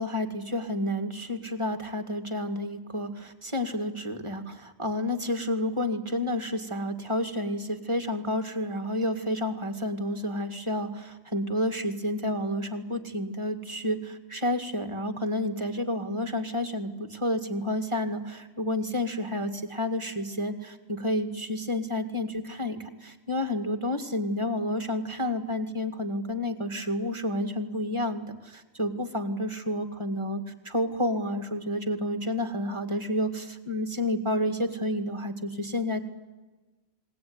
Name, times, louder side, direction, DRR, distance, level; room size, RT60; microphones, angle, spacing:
voice 1, 0.0-36.0, left 1 dB, 25° right, 7 dB, 2.2 m, -30 dB
29.0 x 21.0 x 9.6 m, 1.2 s
omnidirectional pair, 1.2 m